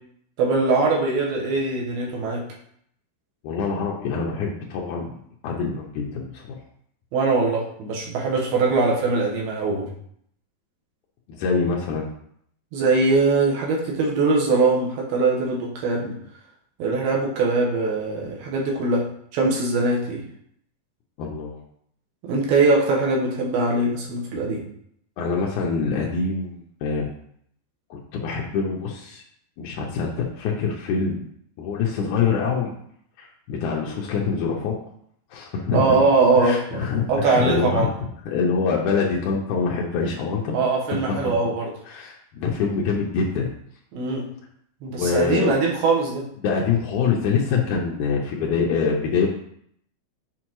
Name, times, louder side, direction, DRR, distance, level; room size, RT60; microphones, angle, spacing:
voice 1, 0.4-2.4 7.1-9.9 12.7-16.2 16.8-19.0 19.3-20.2 22.2-24.6 35.7-37.9 40.5-41.7 43.9-44.3 44.8-46.2, right 3 dB, 80° right, -2 dB, 3.1 m, -22 dB
voice 2, 3.4-5.2 5.4-6.6 11.3-12.1 21.2-21.6 25.2-27.1 27.9-29.2 29.6-31.2 31.6-32.7 33.2-34.8 35.3-36.0 36.4-37.9 38.3-40.6 41.1-41.2 41.9-43.5 44.9-45.5 46.4-49.3, left 5 dB, 90° left, -1 dB, 1.7 m, -25 dB
7.5 x 4.5 x 3.0 m, 0.69 s
omnidirectional pair, 4.4 m